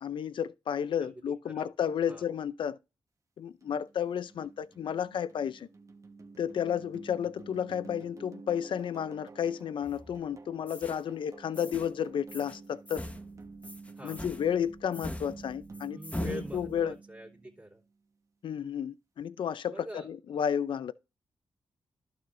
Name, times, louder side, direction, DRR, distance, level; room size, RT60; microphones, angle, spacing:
voice 1, 0.0-2.8 3.4-5.7 6.4-13.1 14.0-17.0 18.4-20.9, left 8 dB, 70° left, 0.5 m, -32 dB
voice 2, 1.0-1.7 2.1-2.3 13.9-14.2 15.9-17.8 19.7-20.1, right 1 dB, 20° right, 3.3 m, -45 dB
sound 1, 3.6-17.8, right 3 dB, 35° right, 1.4 m, -50 dB
sound 2, 9.8-10.3 10.7-11.0 11.5-12.0 12.3-12.6 12.9-17.0, left 1 dB, 15° left, 1.2 m, -42 dB
12.0 x 6.8 x 2.6 m
cardioid pair, 60°, 9 cm